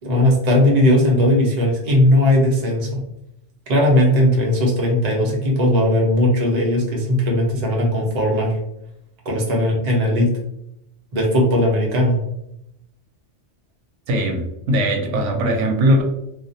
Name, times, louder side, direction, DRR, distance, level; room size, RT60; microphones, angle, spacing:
voice 1, 0.0-3.0 3.7-8.6 9.2-10.3 11.1-12.2, left 1 dB, 40° right, -2 dB, 0.7 m, -18 dB
voice 2, 14.1-16.0, equal, 85° right, 2 dB, 0.9 m, -19 dB
2.4 x 2.1 x 2.6 m, 0.82 s
omnidirectional pair, 1.2 m